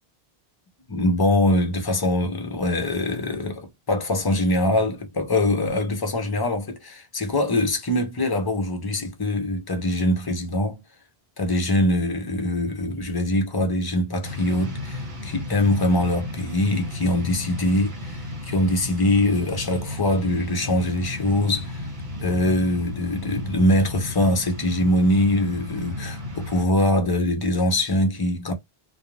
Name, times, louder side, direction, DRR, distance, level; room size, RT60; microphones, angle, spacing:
voice 1, 0.9-10.8 11.4-21.8 22.2-28.5, left 1 dB, 30° left, 0.5 m, -23 dB
sound 1, 14.2-26.7, left 2 dB, 50° right, 1.1 m, -34 dB
2.4 x 2.1 x 3.0 m
omnidirectional pair, 1.0 m